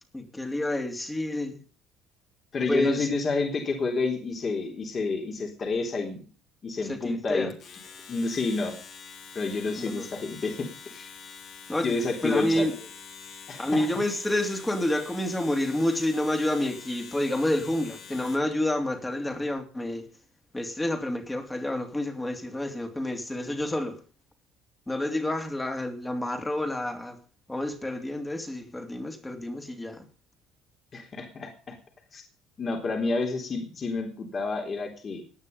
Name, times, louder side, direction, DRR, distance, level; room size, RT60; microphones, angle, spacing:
voice 1, 0.1-1.6 2.7-3.2 6.8-7.5 9.8-10.1 11.7-12.9 13.6-20.1 20.5-24.0 24.9-27.2 27.5-30.1, left 1 dB, 10° left, 2.9 m, -29 dB
voice 2, 2.5-6.2 6.6-7.5 8.1-8.7 9.3-11.1 11.8-12.6 13.5-13.9 30.9-31.8 32.1-32.2 32.6-35.2, left 3 dB, 35° left, 3.8 m, -29 dB
Domestic sounds home sounds, 7.5-18.5, left 6 dB, 50° left, 3.6 m, -46 dB
18.0 x 9.9 x 5.4 m
cardioid pair, 125°, 0 cm